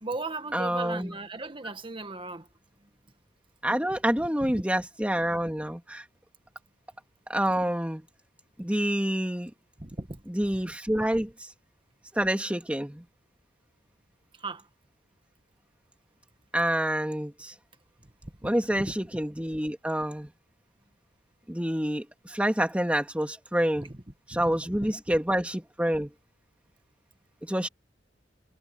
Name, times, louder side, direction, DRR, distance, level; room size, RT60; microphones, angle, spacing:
voice 1, 0.0-2.5 4.4-4.6 9.8-10.2 14.4-14.7 18.2-19.0 23.8-24.0 24.3-25.2, right 3 dB, 30° right, 1.7 m, -38 dB
voice 2, 0.5-1.1 3.6-6.0 7.3-8.0 8.6-9.5 10.3-11.3 12.2-13.0 16.5-17.5 18.4-20.3 21.5-23.9 24.3-26.1 27.4-27.7, equal, 5° right, 2.4 m, -27 dB
head